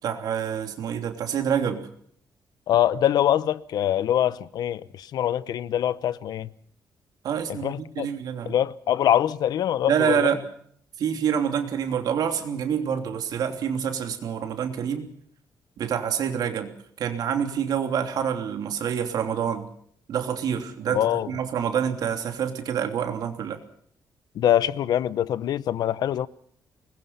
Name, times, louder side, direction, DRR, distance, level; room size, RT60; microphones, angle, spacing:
voice 1, 0.0-1.9 7.2-8.5 9.9-10.5 11.0-15.1 15.8-19.7 20.1-23.6, right 8 dB, 70° right, 3.2 m, -27 dB
voice 2, 2.7-6.5 7.6-8.1 8.5-10.3 20.9-21.3 24.3-26.3, left 11 dB, 75° left, 0.9 m, -24 dB
24.0 x 21.0 x 5.7 m
wide cardioid pair, 170°, 7 cm